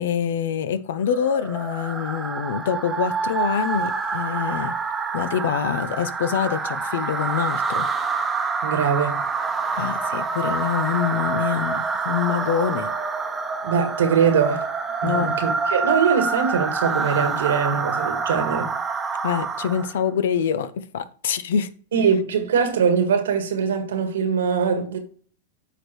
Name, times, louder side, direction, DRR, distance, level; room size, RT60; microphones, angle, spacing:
voice 1, 0.0-4.7 5.1-7.9 9.7-12.9 15.0-15.3 19.2-21.7, left 8 dB, 75° left, 0.7 m, -25 dB
sound 1, 1.1-20.0, right 4 dB, 15° right, 0.9 m, -26 dB
voice 2, 8.6-9.2 13.6-14.7 15.0-18.7 21.9-25.0, right 6 dB, 85° right, 1.7 m, -22 dB
8.5 x 5.1 x 3.1 m
hypercardioid pair, 130°, 0 cm